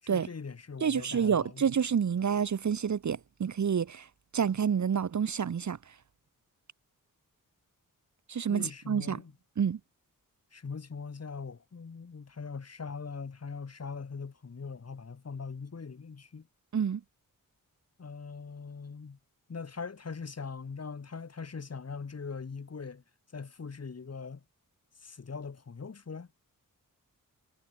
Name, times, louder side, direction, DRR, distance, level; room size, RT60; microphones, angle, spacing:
voice 1, 0.0-1.7 8.5-9.3 10.5-16.5 18.0-19.2 19.5-23.0 23.3-24.4 25.0-26.3, left 5 dB, 45° left, 6.9 m, -41 dB
voice 2, 0.8-4.1 4.3-5.8 8.3-9.2 9.6-9.8 16.7-17.0, right 7 dB, 55° right, 1.2 m, -28 dB
wide cardioid pair, 160°, 34 cm